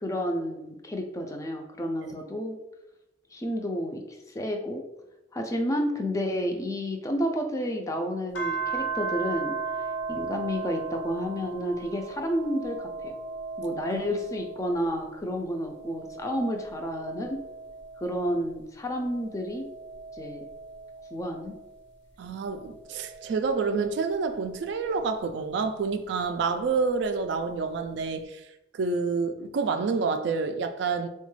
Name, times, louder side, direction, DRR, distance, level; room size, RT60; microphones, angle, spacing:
voice 1, 0.0-2.6 3.3-4.8 5.3-9.5 10.1-13.1 13.6-17.4 18.0-19.6 20.1-20.4 21.1-21.6, equal, 15° left, 0.3 m, -30 dB
sound 1, 8.3-15.1 15.5-18.4 19.0-21.8 22.5-25.0 26.3-27.4, right 4 dB, 75° left, 0.7 m, -37 dB
voice 2, 22.2-28.4 28.8-31.1, right 4 dB, 70° right, 0.3 m, -28 dB
3.9 x 2.2 x 3.1 m
head